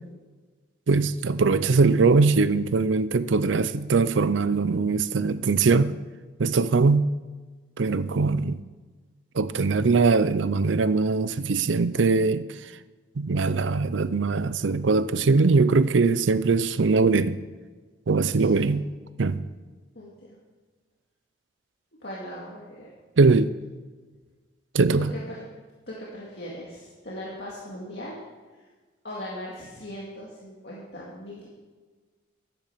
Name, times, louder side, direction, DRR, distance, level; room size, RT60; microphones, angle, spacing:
voice 1, 0.9-5.9 6.4-7.1 7.8-8.6 9.3-12.5 13.2-17.4 18.1-18.8 19.2-19.4 23.2-23.5 24.7-25.1, right 4 dB, 80° right, 0.5 m, -21 dB
voice 2, 18.5-18.8 20.0-20.4 22.0-22.9 25.1-25.4 25.9-28.2 29.0-31.5, equal, 60° left, 2.2 m, -39 dB
11.5 x 10.5 x 5.8 m
head